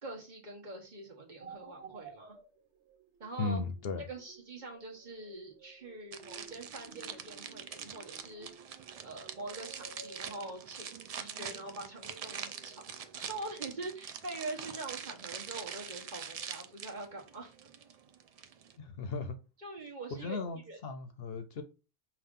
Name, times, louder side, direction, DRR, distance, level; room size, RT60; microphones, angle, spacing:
voice 1, 0.0-2.4 3.2-3.6 4.1-8.5 9.0-17.5 19.6-20.4 20.7-20.8, right 2 dB, 45° right, 1.1 m, -44 dB
sound 1, 1.4-10.6, right 5 dB, 85° right, 1.1 m, -55 dB
voice 2, 3.4-4.0 18.8-19.4 20.1-21.6, left 4 dB, 65° left, 0.8 m, -36 dB
sound 2, 6.1-18.8, right 7 dB, 65° right, 0.3 m, -44 dB
5.6 x 2.5 x 3.6 m
omnidirectional pair, 1.2 m